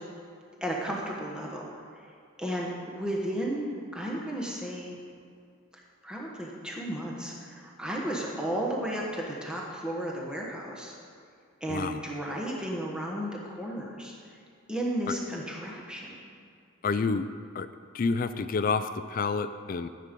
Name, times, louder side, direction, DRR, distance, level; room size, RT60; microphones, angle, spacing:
voice 1, 0.6-1.6 1.9-2.1 2.4-3.7 3.9-5.0 5.7-11.0 11.6-14.4 14.7-16.2, right 1 dB, 5° right, -3 dB, 1.3 m, -34 dB
voice 2, 11.7-12.0 16.8-17.3 17.5-17.7 17.9-19.9, left 4 dB, 45° left, 11 dB, 0.4 m, -28 dB
14.0 x 7.5 x 5.3 m, 2.3 s
head